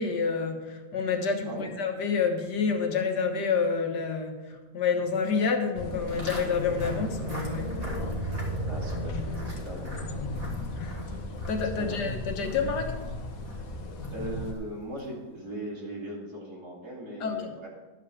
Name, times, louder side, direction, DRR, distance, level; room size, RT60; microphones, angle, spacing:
voice 1, 0.0-7.7 10.8-11.0 11.5-13.0 17.2-17.4, left 5 dB, 80° left, 4 dB, 1.8 m, -28 dB
sound 1, 5.8-14.5, left 1 dB, 60° left, 1.4 m, -34 dB
Walk footsteps, 6.1-15.3, equal, 20° right, 2.4 m, -46 dB
voice 2, 8.7-9.9 11.8-12.0 14.1-17.7, right 1 dB, 70° right, -4 dB, 3.4 m, -39 dB
11.5 x 5.1 x 7.1 m, 1.2 s
omnidirectional pair, 1.8 m